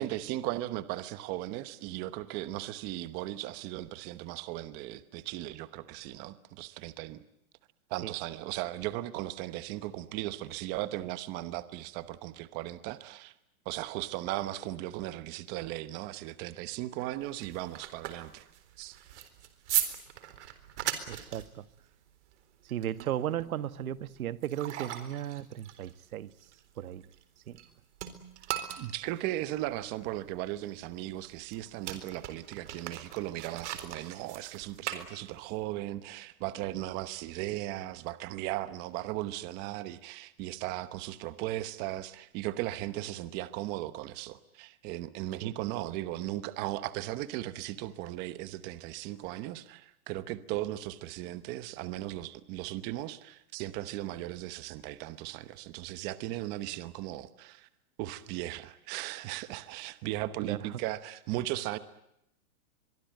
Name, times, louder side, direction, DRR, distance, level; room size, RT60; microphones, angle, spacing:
voice 1, 0.0-7.2 7.9-13.3 13.6-18.5 18.8-19.0 28.8-57.7 58.0-61.8, right 15 dB, 25° right, 1.0 m, -37 dB
sound 1, 17.2-27.7 27.9-35.6, right 12 dB, 55° right, 3.9 m, -39 dB
voice 2, 21.1-21.6 22.7-26.3 26.8-27.0 27.5-27.6 45.4-45.5 60.4-60.7, right 11 dB, 75° right, 1.5 m, -35 dB
24.0 x 23.5 x 9.1 m
supercardioid pair, 165°, 42 cm